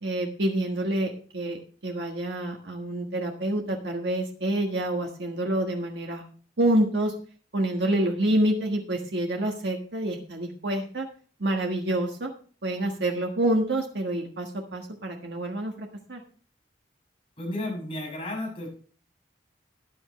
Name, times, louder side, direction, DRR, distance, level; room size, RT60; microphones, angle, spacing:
voice 1, 0.0-6.2 6.6-7.1 7.5-11.1 11.4-12.3 12.6-16.2, right 1 dB, 80° right, 2 dB, 1.5 m, -27 dB
voice 2, 17.4-18.7, left 1 dB, 30° left, -2 dB, 6.9 m, -32 dB
13.5 x 10.0 x 3.2 m, 0.42 s
head